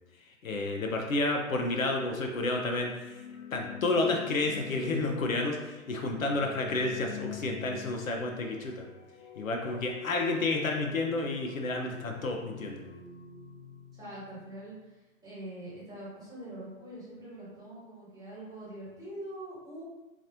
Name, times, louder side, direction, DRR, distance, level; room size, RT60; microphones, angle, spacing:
voice 1, 0.4-3.2 3.5-8.9 9.4-12.9, left 2 dB, 70° left, 2 dB, 0.6 m, -30 dB
sound 1, 2.7-14.6, left 8 dB, 30° left, 0.8 m, -46 dB
voice 2, 13.9-19.8, right 1 dB, 10° right, -10 dB, 1.5 m, -44 dB
4.0 x 2.5 x 2.6 m, 1.1 s
figure-of-eight pair, 115°, 41 cm